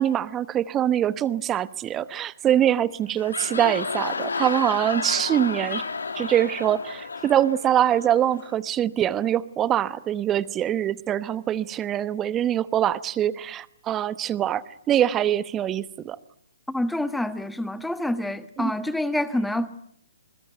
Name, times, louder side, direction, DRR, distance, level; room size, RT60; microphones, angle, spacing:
voice 1, 0.0-5.8 6.1-16.2 18.6-18.7, right 11 dB, 20° right, 1.0 m, -24 dB
sound 1, 3.0-8.6, left 4 dB, 75° left, 2.4 m, -32 dB
voice 2, 16.7-19.7, left 1 dB, 5° left, 1.4 m, -27 dB
27.0 x 21.5 x 9.1 m
figure-of-eight pair, 130°, 0 cm